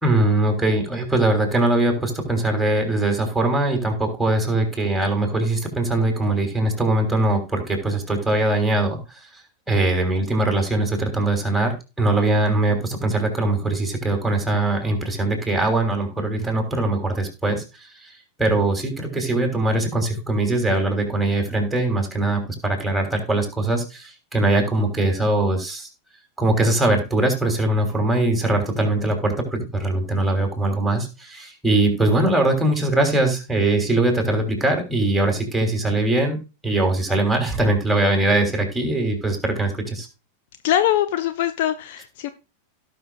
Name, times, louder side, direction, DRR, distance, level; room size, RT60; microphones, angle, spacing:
voice 1, 0.0-9.3 9.7-18.1 18.4-25.9 26.4-36.4 36.6-40.1, right 2 dB, 5° right, 3 dB, 3.4 m, -21 dB
voice 2, 40.6-42.3, left 11 dB, 50° left, 11 dB, 0.7 m, -22 dB
17.0 x 6.2 x 2.4 m, 0.28 s
figure-of-eight pair, 90°, 0 cm